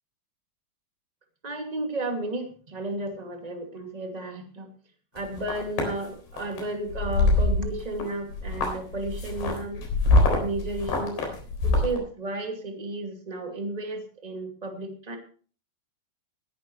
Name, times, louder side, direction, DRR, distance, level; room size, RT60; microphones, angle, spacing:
voice 1, 1.4-4.7 5.1-9.8 10.3-11.2 11.6-15.2, right 2 dB, 15° right, 3 dB, 1.6 m, -33 dB
sound 1, 5.2-5.9 6.4-6.6 6.9-8.0 8.3-12.0, left 2 dB, 80° left, 6.0 m, -24 dB
20.0 x 11.0 x 3.2 m, 0.40 s
omnidirectional pair, 4.6 m